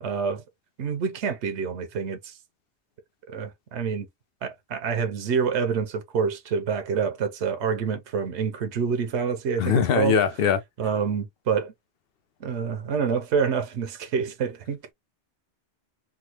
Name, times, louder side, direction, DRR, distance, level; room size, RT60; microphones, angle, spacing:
voice 1, 0.0-0.4 0.8-2.3 3.3-4.1 4.4-10.2 10.8-11.7 12.4-14.8, right 6 dB, 85° right, 1.0 m, -27 dB
voice 2, 9.6-10.6, left 7 dB, 65° left, 0.8 m, -21 dB
3.5 x 2.2 x 2.9 m
omnidirectional pair, 1.1 m